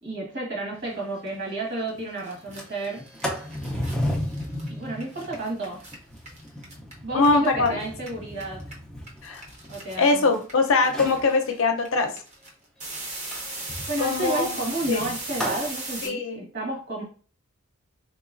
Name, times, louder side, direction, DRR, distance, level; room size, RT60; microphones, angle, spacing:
voice 1, 0.0-3.1 4.7-5.8 7.0-8.6 9.7-10.4 13.9-17.0, right 2 dB, 50° right, -1 dB, 1.5 m, -31 dB
Sliding door, 0.8-0.9 1.3-1.4 1.7-2.0 2.4-10.4 10.8-11.3 13.3-15.7, equal, 5° left, 0.5 m, -34 dB
sound 1, 1.9-2.0 2.2-7.7 8.0-16.1, right 2 dB, 30° right, 0.8 m, -38 dB
voice 2, 7.1-7.8 9.2-9.4 10.0-12.1 14.0-14.6 14.9-15.1 16.0-16.4, left 3 dB, 65° left, 5 dB, 0.6 m, -22 dB
3.9 x 3.0 x 2.5 m, 0.39 s
head